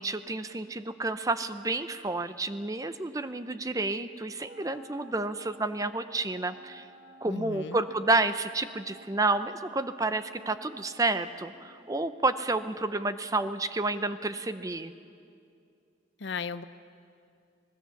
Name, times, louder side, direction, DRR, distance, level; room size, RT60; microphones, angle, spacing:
voice 1, 0.0-6.8 7.2-14.9, right 2 dB, 20° right, 11 dB, 0.6 m, -30 dB
Wind instrument woodwind instrument, 4.3-12.0, right 2 dB, 45° right, 6.6 m, -55 dB
voice 2, 7.2-7.8 16.2-16.6, left 5 dB, 65° left, 13 dB, 0.7 m, -36 dB
25.5 x 19.0 x 7.1 m, 2.5 s
head